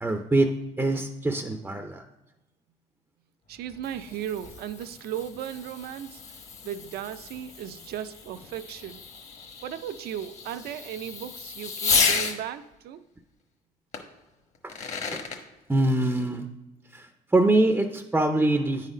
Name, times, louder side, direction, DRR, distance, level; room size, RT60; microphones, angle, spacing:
voice 1, 0.0-2.0 14.6-14.7 15.1-15.2 15.7-16.5 16.9-18.9, right 2 dB, 10° right, 6 dB, 0.5 m, -24 dB
Fireworks, 3.5-12.4 13.9-14.0 14.5-15.4, left 5 dB, 40° left, 1.1 m, -32 dB
voice 2, 3.5-9.0 9.6-13.0, right 10 dB, 70° right, 11 dB, 0.5 m, -36 dB
9.3 x 4.1 x 5.0 m, 1.0 s
cardioid pair, 110°, 17 cm